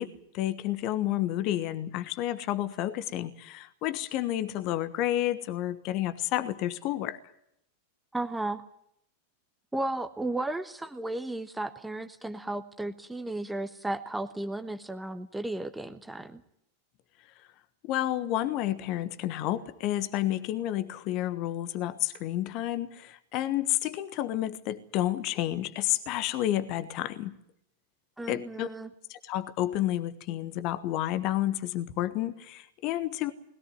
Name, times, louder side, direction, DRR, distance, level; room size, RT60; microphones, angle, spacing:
voice 1, 0.0-7.2 17.8-27.4 28.3-28.7 29.1-33.3, left 13 dB, 40° left, 12 dB, 1.3 m, -30 dB
voice 2, 8.1-8.6 9.7-16.4 28.2-28.9, right 2 dB, 5° right, 9 dB, 1.3 m, -34 dB
21.0 x 17.0 x 9.4 m, 0.77 s
figure-of-eight pair, 90°, 0 cm